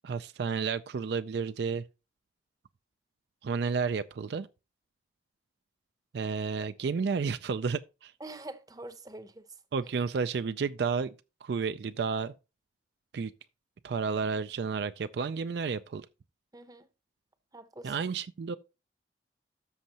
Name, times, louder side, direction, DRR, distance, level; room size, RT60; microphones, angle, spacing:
voice 1, 0.0-1.8 3.4-4.5 6.1-8.1 9.7-11.1 11.4-12.3 13.1-13.3 13.8-16.1 17.8-18.6, right 5 dB, 60° right, 0.4 m, -31 dB
voice 2, 8.2-9.4 16.5-16.9 17.5-17.9, right 2 dB, 20° right, 0.7 m, -45 dB
13.0 x 6.4 x 2.8 m
head